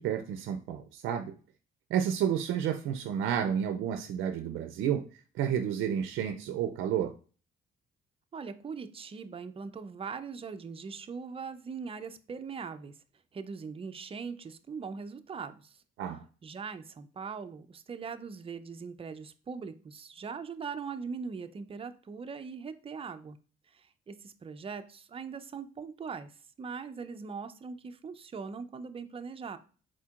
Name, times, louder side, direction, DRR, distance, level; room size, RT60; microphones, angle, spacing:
voice 1, 0.0-1.3 1.9-5.0 5.3-7.1 16.0-16.2, right 9 dB, 85° right, 8 dB, 0.5 m, -30 dB
voice 2, 8.3-12.9 13.3-15.8 16.4-23.4 23.7-26.3 26.6-29.6, right 5 dB, 30° right, 10 dB, 0.5 m, -41 dB
4.4 x 4.3 x 2.4 m, 0.38 s
cardioid pair, 90°, 20 cm